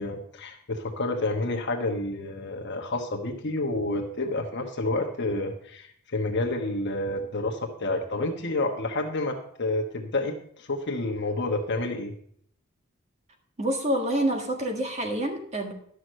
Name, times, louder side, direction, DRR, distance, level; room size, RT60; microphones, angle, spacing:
voice 1, 0.0-12.1, left 2 dB, 50° left, 2 dB, 1.2 m, -29 dB
voice 2, 13.6-15.7, right 1 dB, 30° right, 3 dB, 1.7 m, -27 dB
12.0 x 6.3 x 6.4 m, 0.66 s
head